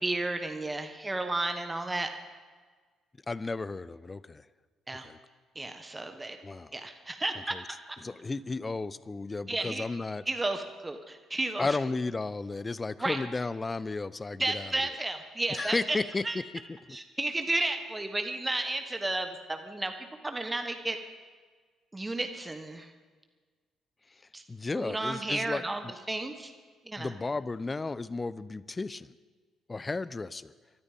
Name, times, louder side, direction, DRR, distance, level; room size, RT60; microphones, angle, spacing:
voice 1, 0.0-2.1 4.9-5.1 5.5-6.4 6.7-7.8 9.5-9.8 10.3-11.7 13.0-13.2 14.4-16.0 16.2-16.4 16.9-21.0 21.9-22.9 24.3-24.4 24.7-26.5 26.8-27.1, right 2 dB, 15° right, 6 dB, 1.3 m, -32 dB
voice 2, 3.3-4.4 5.0-5.2 6.4-6.7 7.5-7.6 8.0-10.2 11.6-14.7 15.5-16.3 16.9-17.0 24.5-25.9 27.0-29.1 29.7-30.5, left 3 dB, 25° left, 19 dB, 0.5 m, -33 dB
25.5 x 13.5 x 3.7 m, 1.5 s
figure-of-eight pair, 45°, 0 cm